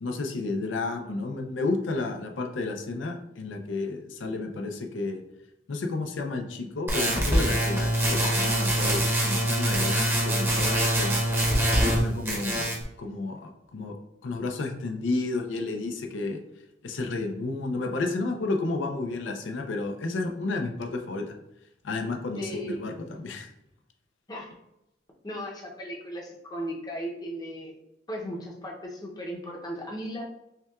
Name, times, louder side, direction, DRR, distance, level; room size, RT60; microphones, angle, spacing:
voice 1, 0.0-5.2 5.7-11.2 11.8-12.7 13.0-13.9 14.2-16.4 16.8-21.2 21.8-23.5, left 3 dB, 90° left, 3 dB, 0.5 m, -31 dB
sound 1, 6.9-12.0 12.3-12.8, right 1 dB, 15° right, 0.7 m, -24 dB
voice 2, 22.3-22.8 24.3-24.5 25.2-27.8 28.1-30.3, equal, 20° left, -1 dB, 0.6 m, -36 dB
5.5 x 2.2 x 2.3 m, 0.86 s
head